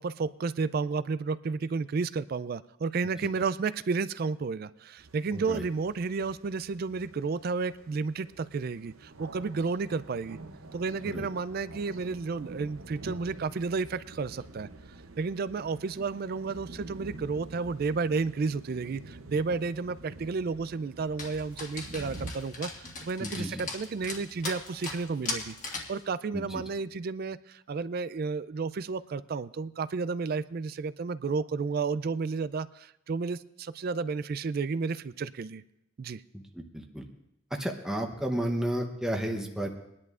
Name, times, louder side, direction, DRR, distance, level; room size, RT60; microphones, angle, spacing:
voice 1, 0.0-10.4 10.7-14.7 15.2-35.6 36.0-36.2, right 4 dB, 45° right, 16 dB, 0.3 m, -32 dB
sound 1, 5.0-22.3, right 2 dB, 85° right, 0.7 m, -47 dB
voice 2, 5.3-5.6 11.1-11.3 23.2-23.6 26.3-26.6 36.6-36.7 36.9-37.0 37.6-39.7, right 1 dB, 5° right, 2 dB, 0.8 m, -32 dB
Dog, 21.2-26.0, left 3 dB, 40° left, 1.6 m, -39 dB
22.5 x 10.5 x 2.5 m, 0.84 s
head